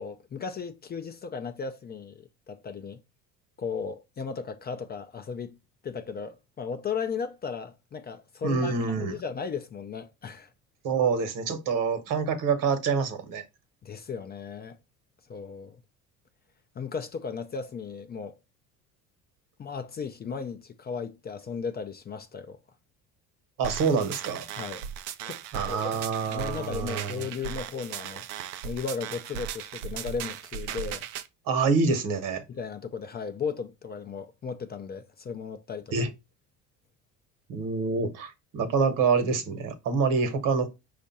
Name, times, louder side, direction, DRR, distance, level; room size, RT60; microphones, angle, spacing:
voice 1, 0.0-3.0 3.6-5.6 5.8-10.5 13.8-14.8 15.3-15.8 16.8-18.3 19.6-22.6 24.6-24.9 25.2-25.4 25.7-26.0 26.3-28.3 28.6-31.1 32.5-35.9, left 5 dB, 25° left, 0.5 m, -36 dB
voice 2, 8.4-9.2 10.8-13.4 23.6-24.4 25.5-27.3 31.5-32.4 35.9-36.1 37.5-40.7, right 5 dB, 60° right, 1.2 m, -26 dB
sound 1, 23.6-31.3, right 9 dB, 85° right, 0.5 m, -37 dB
5.1 x 2.5 x 4.1 m
supercardioid pair, 80°, 36 cm